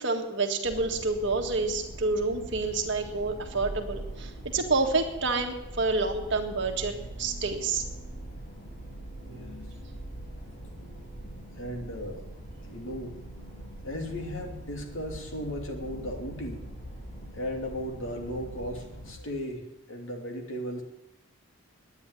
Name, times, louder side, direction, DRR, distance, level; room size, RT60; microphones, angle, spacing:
voice 1, 0.0-7.9, right 3 dB, 55° right, 3 dB, 1.8 m, -28 dB
sound 1, 0.6-19.1, right 1 dB, 35° left, 4.3 m, -42 dB
voice 2, 11.6-12.3 12.6-13.2 13.8-16.6 17.3-20.8, equal, 65° left, 2 dB, 2.8 m, -36 dB
11.5 x 9.7 x 9.6 m, 0.94 s
head